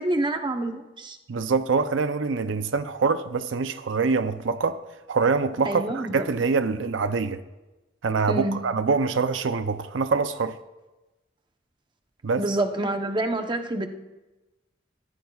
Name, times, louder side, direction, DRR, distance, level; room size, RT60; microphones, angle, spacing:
voice 1, 0.0-1.2 5.6-6.1 8.3-8.6 12.4-13.9, right 2 dB, 25° right, 0.9 m, -27 dB
voice 2, 1.3-4.8 5.1-7.4 8.0-10.6 12.2-12.4, right 4 dB, 85° right, 0.6 m, -25 dB
22.5 x 14.5 x 2.4 m
head